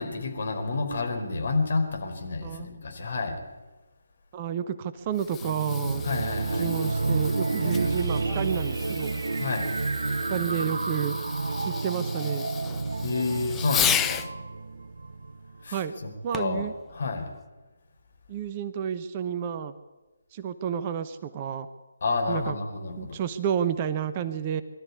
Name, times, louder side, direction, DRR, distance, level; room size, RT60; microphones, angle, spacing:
voice 1, 0.0-3.4 6.0-6.7 9.4-9.7 13.0-14.2 15.6-17.3 22.0-23.2, left 3 dB, 50° left, 4 dB, 4.6 m, -30 dB
voice 2, 4.3-6.0 6.6-9.1 10.3-11.2 11.7-12.5 15.7-15.9 16.2-16.7 18.3-19.7 20.3-21.7 22.3-22.5 23.0-24.6, right 8 dB, 25° right, 11 dB, 0.9 m, -30 dB
Fireworks, 5.0-14.3 16.3-16.7 17.4-17.5, left 9 dB, 10° left, 0.7 m, -34 dB
sound 1, 5.4-15.6, right 3 dB, 60° right, 0.8 m, -30 dB
23.0 x 13.0 x 9.7 m, 1.2 s
figure-of-eight pair, 145°, 0 cm